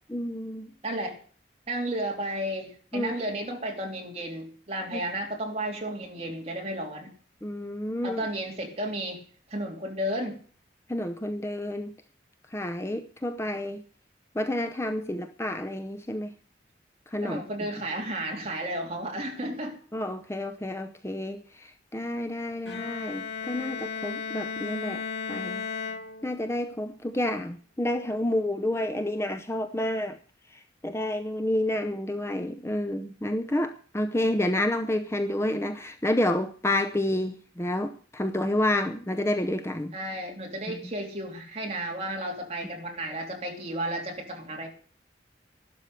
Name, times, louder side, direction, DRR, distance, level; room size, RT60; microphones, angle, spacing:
voice 1, 0.1-0.7 2.9-3.1 4.9-5.0 7.4-8.2 10.9-11.9 12.5-13.8 14.3-16.3 17.1-17.4 19.9-25.0 25.3-25.6 26.2-30.2 30.5-40.0 40.7-40.8, left 1 dB, 15° left, 0.7 m, -29 dB
voice 2, 0.8-1.2 1.7-7.1 8.0-9.2 9.5-10.4 17.2-19.8 39.9-44.7, right 1 dB, 35° right, 3.0 m, -33 dB
Bowed string instrument, 22.7-26.7, left 5 dB, 65° left, 2.1 m, -35 dB
13.0 x 12.0 x 6.7 m
head